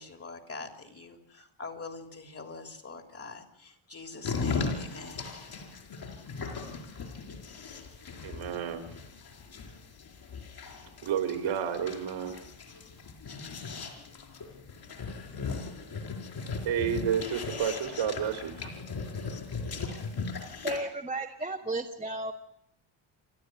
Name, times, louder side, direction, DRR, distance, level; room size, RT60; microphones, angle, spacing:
voice 1, 0.0-5.7, left 3 dB, 30° left, 6 dB, 3.6 m, -44 dB
sound 1, 4.2-20.8, left 4 dB, 45° left, 4.7 m, -38 dB
voice 2, 8.2-8.9 11.0-12.4 16.6-18.7, right 8 dB, 70° right, 6 dB, 3.8 m, -30 dB
voice 3, 20.6-22.3, right 2 dB, 10° right, -1 dB, 1.7 m, -33 dB
29.0 x 12.5 x 9.1 m, 0.74 s
cardioid pair, 125°, 50 cm